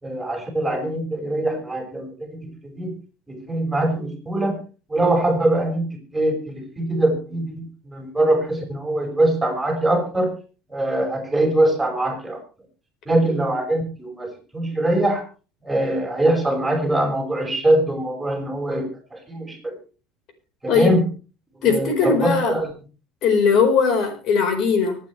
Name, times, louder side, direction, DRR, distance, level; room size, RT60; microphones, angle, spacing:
voice 1, 0.0-3.0 3.3-4.5 4.9-10.3 10.7-12.4 13.1-15.2 15.6-19.8 20.6-21.1 21.5-22.7, right 1 dB, 5° right, 0 dB, 5.7 m, -23 dB
voice 2, 21.6-22.6 23.2-25.0, left 5 dB, 50° left, 6 dB, 4.6 m, -19 dB
24.5 x 9.5 x 3.3 m, 0.35 s
cardioid pair, 140°, 0 cm